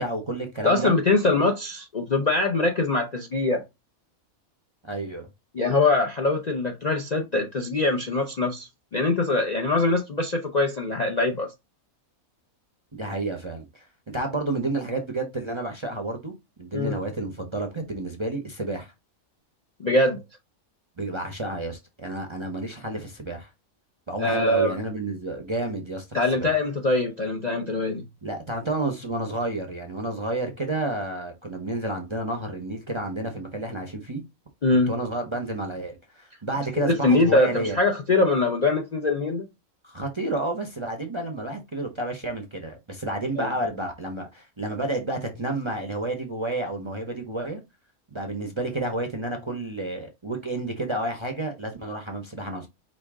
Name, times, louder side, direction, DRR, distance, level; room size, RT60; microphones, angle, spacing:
voice 1, 0.0-0.9 4.8-5.3 12.9-16.3 16.6-18.9 21.0-23.5 24.1-26.1 26.3-26.5 28.2-34.2 34.9-37.8 39.8-47.6 48.1-52.7, right 2 dB, 30° right, 0.6 m, -30 dB
voice 2, 0.6-3.6 5.5-11.5 16.7-17.0 19.8-20.2 24.2-24.8 26.1-28.0 34.6-34.9 36.8-39.5 43.4-43.5, left 2 dB, 45° left, 0.5 m, -23 dB
5.1 x 2.6 x 3.6 m
omnidirectional pair, 1.5 m